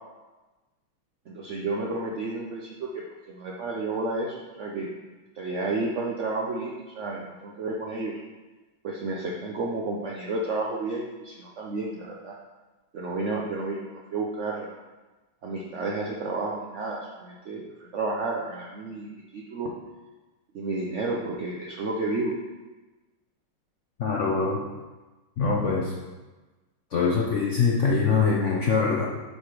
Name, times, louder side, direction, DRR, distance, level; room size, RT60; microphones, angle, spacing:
voice 1, 1.3-4.9 5.3-8.1 8.8-12.4 12.9-14.7 15.4-19.1 19.3-19.7 20.5-22.3, right 3 dB, 70° right, -2 dB, 0.7 m, -31 dB
voice 2, 24.0-24.7 25.4-25.9 26.9-29.1, left 5 dB, 80° left, -2 dB, 0.6 m, -23 dB
7.0 x 4.8 x 5.0 m, 1.2 s
omnidirectional pair, 2.2 m